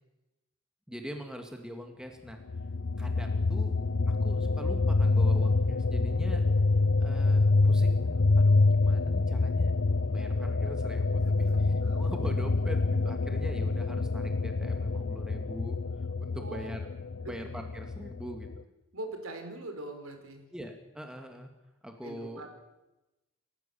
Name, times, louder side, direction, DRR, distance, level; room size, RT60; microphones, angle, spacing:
voice 1, 0.9-2.4 3.0-6.4 7.0-9.7 10.0-11.5 11.9-15.8 16.2-16.8 17.2-18.6 20.5-21.5 21.8-22.4, equal, 5° right, 4 dB, 2.2 m, -43 dB
sound 1, 2.5-18.6, left 3 dB, 75° left, 0.7 m, -26 dB
voice 2, 6.3-6.7 11.5-12.0 16.4-16.7 17.2-17.4 18.9-20.4 22.0-22.5, right 2 dB, 85° right, 5 dB, 4.5 m, -42 dB
29.0 x 14.5 x 7.2 m, 0.98 s
head